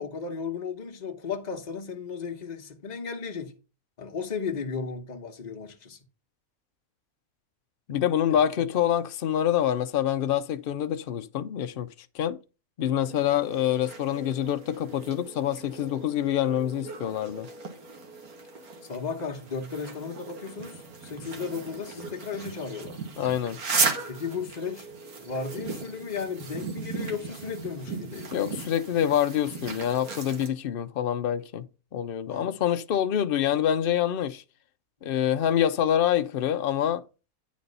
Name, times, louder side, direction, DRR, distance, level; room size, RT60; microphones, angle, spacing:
voice 1, 0.0-3.5 4.0-6.0 8.3-8.4 18.8-23.0 24.1-24.9 25.2-28.4 32.3-32.5, left 5 dB, 30° left, 1.1 m, -35 dB
voice 2, 7.9-11.9 12.1-12.4 12.8-17.5 23.2-23.6 28.3-31.6 31.9-34.4 35.0-37.0, left 10 dB, 60° left, 0.6 m, -26 dB
sound 1, 13.0-30.5, right 4 dB, 90° right, 1.9 m, -36 dB
9.3 x 4.2 x 5.4 m
omnidirectional pair, 1.5 m